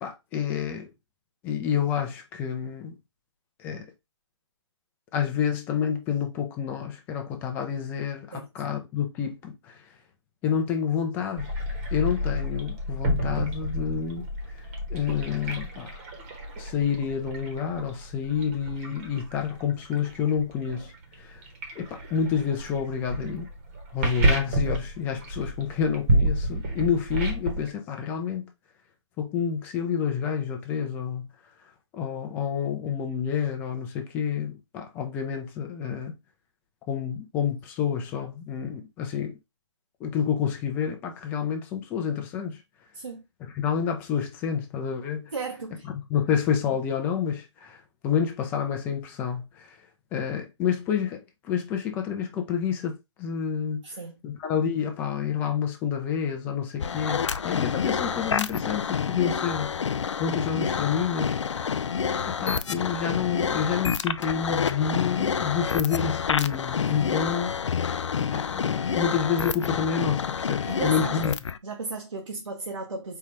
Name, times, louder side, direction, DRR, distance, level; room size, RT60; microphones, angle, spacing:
voice 1, 0.0-0.9 1.4-2.9 3.6-3.9 5.1-9.8 10.4-11.5 11.9-14.3 14.5-14.6 14.9-16.0 16.6-20.9 21.2-21.4 21.8-23.5 23.9-28.5 29.2-31.3 31.9-36.2 36.9-39.4 40.0-42.6 43.5-45.3 45.9-49.8 50.1-53.8 54.2-59.9 60.2-61.8 62.3-71.4, left 7 dB, 10° left, 0.5 m, -29 dB
sound 1, 11.4-27.7, right 1 dB, 25° right, 1.0 m, -30 dB
voice 2, 45.3-45.9 53.8-54.2 70.7-71.2 71.6-73.2, right 4 dB, 85° right, 0.9 m, -35 dB
sound 2, 56.8-71.6, left 6 dB, 75° left, 0.4 m, -28 dB
4.5 x 2.4 x 3.3 m
figure-of-eight pair, 150°, 16 cm